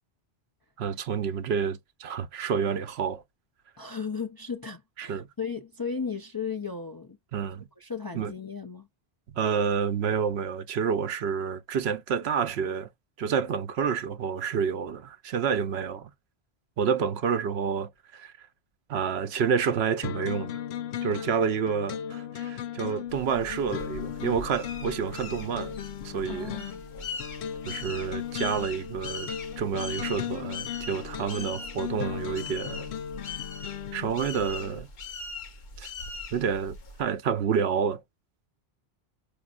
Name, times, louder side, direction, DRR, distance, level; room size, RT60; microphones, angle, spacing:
voice 1, 0.8-3.2 5.0-5.3 7.3-7.7 8.1-8.3 9.4-12.9 13.2-16.1 16.8-18.5 18.9-20.6 21.0-25.8 26.0-26.6 27.6-29.3 29.6-32.9 33.9-34.9 35.8-35.9 36.3-38.0, right 6 dB, 80° right, 0.9 m, -29 dB
voice 2, 3.8-7.2 7.8-8.9 21.1-21.4 26.3-26.8, left 5 dB, 35° left, 0.3 m, -35 dB
sound 1, 20.0-34.8, left 9 dB, 85° left, 0.9 m, -37 dB
sound 2, 23.1-37.0, left 4 dB, 50° left, 0.9 m, -41 dB
5.1 x 2.7 x 2.3 m
omnidirectional pair, 1.1 m